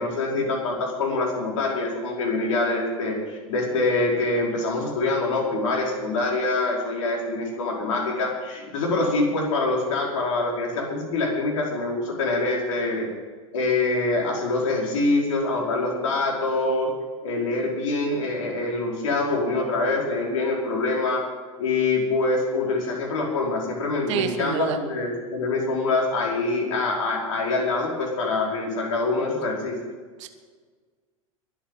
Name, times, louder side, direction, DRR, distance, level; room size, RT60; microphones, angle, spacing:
voice 1, 0.0-13.1 13.5-16.9 17.2-21.2 21.6-29.8, left 2 dB, 60° left, -1 dB, 5.0 m, -25 dB
voice 2, 24.1-24.8 30.2-30.3, right 9 dB, 55° right, 7 dB, 1.7 m, -27 dB
22.0 x 8.5 x 5.6 m, 1.5 s
figure-of-eight pair, 85°, 18 cm